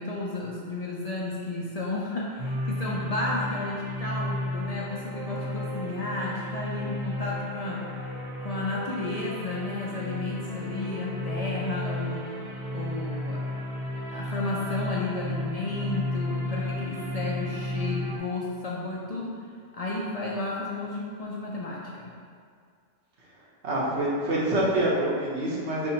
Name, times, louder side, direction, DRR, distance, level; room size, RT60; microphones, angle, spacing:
voice 1, 0.0-13.6 14.1-19.4 19.7-22.1, left 2 dB, 50° left, -5 dB, 0.4 m, -33 dB
sound 1, 2.4-18.2, left 1 dB, 60° right, 1.1 m, -33 dB
voice 2, 23.6-25.9, right 1 dB, 90° right, -6 dB, 1.3 m, -26 dB
5.0 x 3.5 x 2.8 m, 2.1 s
omnidirectional pair, 1.1 m